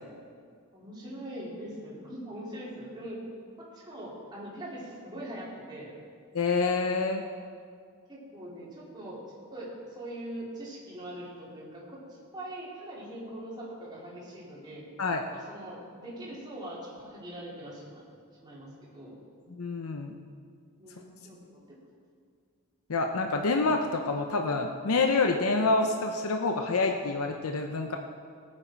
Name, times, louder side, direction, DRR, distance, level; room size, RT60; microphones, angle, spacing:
voice 1, 0.7-3.2 3.6-5.9 8.1-9.2 9.5-14.9 15.3-18.0 18.4-19.2 20.8-21.8, right 1 dB, 20° right, -7 dB, 3.6 m, -42 dB
voice 2, 6.3-7.2 15.0-15.2 19.5-20.2 22.9-28.0, left 3 dB, 75° left, 4 dB, 0.7 m, -27 dB
18.5 x 8.9 x 4.6 m, 2.2 s
head